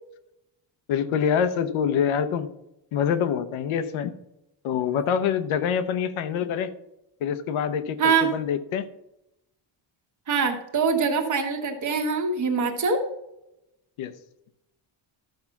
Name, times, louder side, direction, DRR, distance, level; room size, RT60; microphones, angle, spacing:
voice 1, 0.9-2.5 2.9-4.1 4.6-6.7 7.2-8.9 14.0-14.1, left 7 dB, 75° left, 11 dB, 1.0 m, -25 dB
voice 2, 8.0-8.3 10.3-13.0, right 5 dB, 35° right, 4 dB, 1.5 m, -23 dB
13.5 x 5.7 x 5.9 m, 0.85 s
cardioid pair, 180°, 49 cm